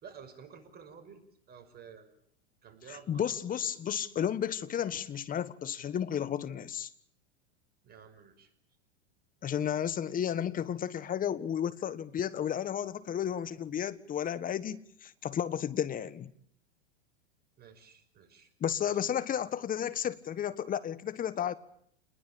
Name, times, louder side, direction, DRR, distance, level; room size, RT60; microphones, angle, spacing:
voice 1, 0.0-1.2 1.5-2.1 2.6-3.4 7.8-8.5 17.6-18.5 18.9-19.0, right 7 dB, 30° right, 5.8 m, -52 dB
voice 2, 2.9-6.9 9.4-16.3 18.6-21.6, left 9 dB, 25° left, 1.6 m, -33 dB
28.0 x 21.0 x 8.8 m
hypercardioid pair, 110°, 32 cm